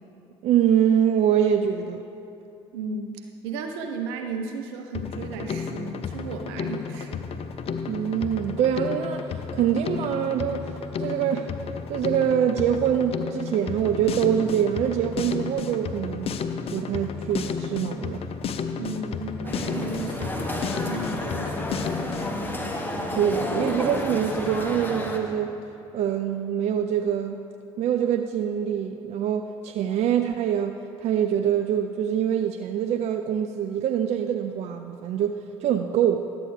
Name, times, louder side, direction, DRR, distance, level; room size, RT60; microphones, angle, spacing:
voice 1, 0.4-2.0 7.9-11.5 11.9-16.4 16.6-18.2 23.1-25.6 25.9-27.4 27.8-36.3, right 9 dB, 55° right, 7 dB, 0.4 m, -24 dB
voice 2, 2.7-7.3 18.7-22.1, right 3 dB, 80° right, 4 dB, 0.8 m, -35 dB
Drum kit, 4.9-22.4, left 6 dB, 50° left, 0.6 m, -32 dB
sound 1, 19.4-25.2, left 1 dB, 15° left, 1.2 m, -31 dB
12.5 x 8.4 x 3.3 m, 2.7 s
hypercardioid pair, 55°, 13 cm